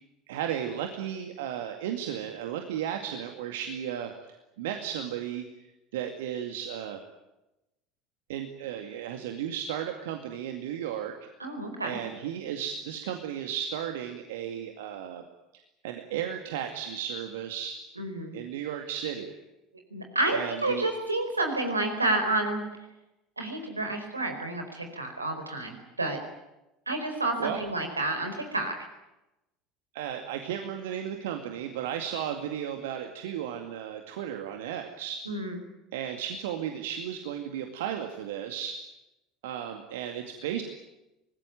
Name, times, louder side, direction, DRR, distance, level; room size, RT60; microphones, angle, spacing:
voice 1, 0.3-4.1 4.6-5.4 5.9-7.0 8.3-11.1 11.8-15.2 15.8-17.8 18.3-19.3 20.3-20.9 27.4-27.6 29.9-35.2 35.9-38.8 39.4-40.6, right 9 dB, 65° right, 4 dB, 2.2 m, -34 dB
voice 2, 11.4-12.0 18.0-18.4 19.9-22.6 23.4-26.2 26.9-28.8 35.3-35.6, right 2 dB, 85° right, 5 dB, 4.5 m, -30 dB
25.0 x 20.0 x 9.2 m, 0.95 s
figure-of-eight pair, 70°, 0 cm